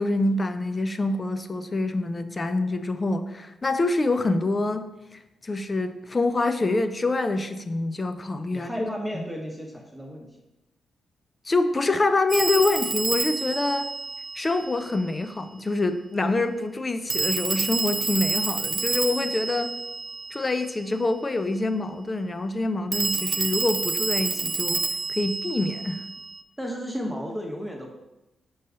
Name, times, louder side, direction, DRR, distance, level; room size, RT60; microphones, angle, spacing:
voice 1, 0.0-8.7 9.1-9.2 11.5-13.9 14.4-19.7 20.3-24.8 25.1-26.0, left 2 dB, 35° left, 10 dB, 0.6 m, -26 dB
voice 2, 8.5-10.3 19.3-19.4 26.6-27.9, equal, 5° right, 0 dB, 1.4 m, -33 dB
Telephone, 12.3-14.9 17.1-20.7 22.9-26.4, right 4 dB, 50° right, 0.6 m, -29 dB
5.4 x 4.0 x 5.0 m, 0.94 s
hypercardioid pair, 40°, 0 cm